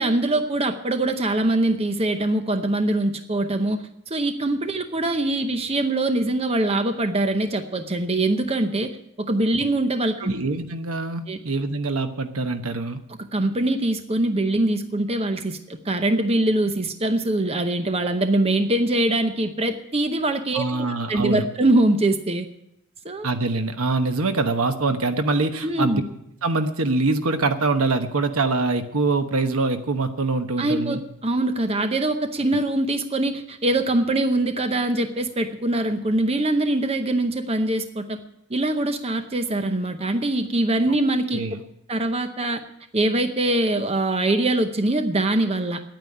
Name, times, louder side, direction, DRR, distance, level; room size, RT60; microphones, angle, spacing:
voice 1, 0.0-10.3 11.3-11.4 13.3-22.5 23.0-23.3 25.6-26.0 30.6-38.2 38.5-41.4 41.9-42.6 42.9-45.8, right 2 dB, 25° right, 7 dB, 0.8 m, -23 dB
voice 2, 10.2-13.0 20.5-21.5 23.2-26.0 26.4-31.0 40.9-41.0 41.3-41.6, right 3 dB, 80° right, 8 dB, 1.1 m, -24 dB
9.7 x 9.1 x 9.8 m, 0.79 s
head